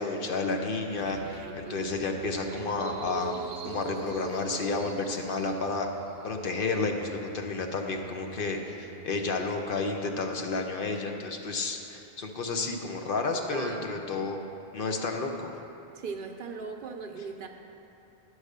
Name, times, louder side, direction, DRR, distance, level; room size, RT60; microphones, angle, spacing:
voice 1, 0.0-5.9 6.2-14.4 14.7-15.5, left 3 dB, 60° left, 3 dB, 0.8 m, -31 dB
sound 1, 0.9-9.5, right 6 dB, 90° right, 0.9 m, -43 dB
voice 2, 13.5-14.1 15.9-17.5, right 4 dB, 60° right, 4 dB, 0.7 m, -39 dB
9.7 x 4.8 x 6.6 m, 2.7 s
omnidirectional pair, 1.1 m